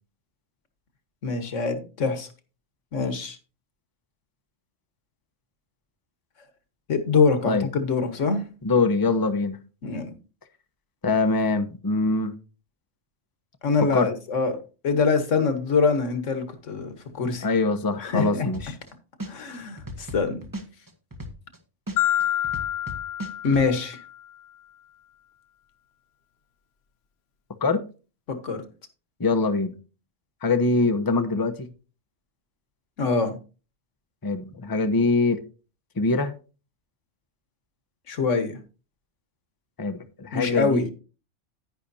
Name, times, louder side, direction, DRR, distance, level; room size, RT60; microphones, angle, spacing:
voice 1, 1.2-2.3 2.9-3.4 6.9-8.4 9.8-10.1 13.6-14.6 14.8-17.5 18.0-18.5 19.3-20.4 23.4-24.0 28.3-28.6 33.0-33.4 38.1-38.6 40.3-40.9, left 4 dB, 85° left, 1.7 m, -24 dB
voice 2, 8.6-9.6 11.0-12.3 13.9-14.1 17.4-18.8 27.6-27.8 29.2-29.7 30.4-31.7 34.2-35.4 36.0-36.3 39.8-40.8, left 3 dB, 20° left, 0.8 m, -23 dB
sound 1, 18.5-18.9 19.2-21.6 21.9-23.7, equal, 15° right, 1.2 m, -36 dB
Marimba xylophone, 22.0-24.2, left 11 dB, 65° left, 1.0 m, -27 dB
10.0 x 10.0 x 2.7 m
omnidirectional pair, 1.2 m